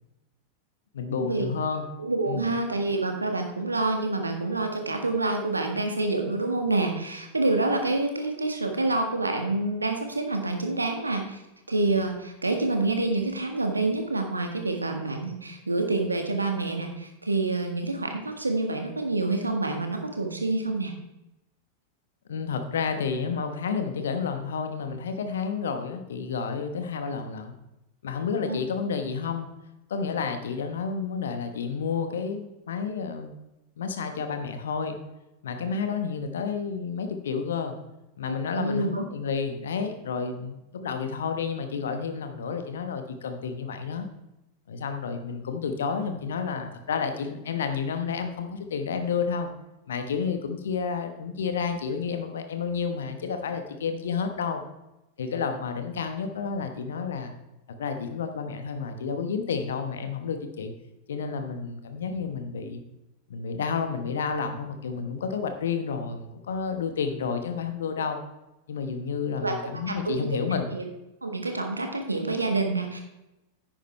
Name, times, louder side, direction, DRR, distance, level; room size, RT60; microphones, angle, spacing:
voice 1, 0.9-1.8 2.3-2.4 22.3-27.6 28.0-29.5 29.9-33.4 33.8-35.0 35.4-37.8 38.2-44.1 44.7-49.5 49.9-54.6 55.2-57.3 57.7-60.7 61.1-62.8 63.3-68.2 68.7-70.7, left 5 dB, 65° left, 7 dB, 1.2 m, -30 dB
voice 2, 2.0-11.4 11.7-20.9 28.5-28.6 38.3-39.0 69.4-69.6 69.9-70.3 70.7-70.9 71.2-73.0, right 2 dB, 80° right, 4 dB, 1.5 m, -27 dB
10.5 x 8.9 x 3.3 m, 0.95 s
figure-of-eight pair, 90°, 0 cm